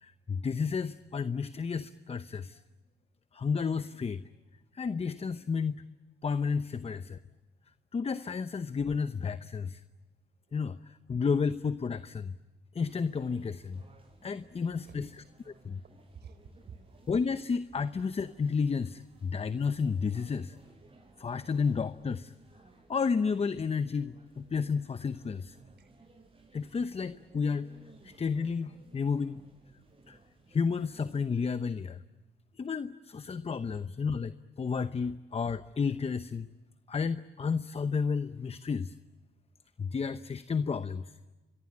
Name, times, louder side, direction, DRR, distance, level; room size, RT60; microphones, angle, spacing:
voice 1, 0.0-2.6 3.3-4.2 4.7-5.8 6.2-7.2 7.9-9.8 10.5-12.3 12.7-13.8 14.2-15.1 15.6-15.8 17.1-20.5 21.2-22.3 22.9-25.6 26.5-27.7 28.0-29.4 30.1-30.2 30.5-32.0 32.6-36.5 36.9-38.9 39.8-41.0, left 5 dB, 30° left, 13 dB, 0.9 m, -31 dB
sound 1, 12.8-31.2, right 3 dB, 25° right, 6.6 m, -59 dB
voice 2, 14.4-15.3 15.8-17.0 25.8-25.9, right 6 dB, 55° right, 9 dB, 4.4 m, -52 dB
28.0 x 23.5 x 8.7 m, 1.2 s
cardioid pair, 90°, 20 cm